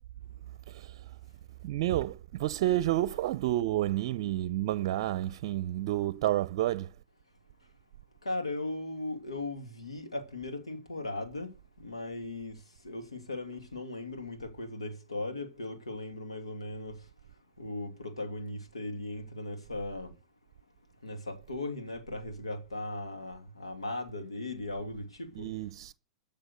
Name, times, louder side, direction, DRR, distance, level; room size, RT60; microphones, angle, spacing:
voice 1, 0.7-1.0 1.6-6.9 25.4-25.9, right 14 dB, 55° right, 0.6 m, -30 dB
voice 2, 8.2-11.5 11.8-17.0 17.6-20.1 21.0-25.5, left 2 dB, 85° left, 2.5 m, -38 dB
14.5 x 6.6 x 8.2 m
hypercardioid pair, 105°, 3 cm